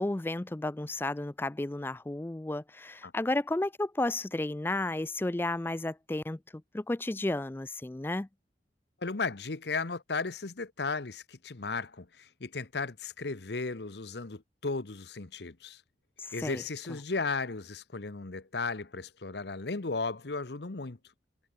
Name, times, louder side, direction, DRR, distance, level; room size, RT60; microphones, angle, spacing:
voice 1, 0.0-6.4 6.7-8.3 16.2-16.6, left 2 dB, 10° left, 0.3 m, -32 dB
voice 2, 9.0-15.8 16.3-21.0, left 4 dB, 75° left, 1.0 m, -35 dB
head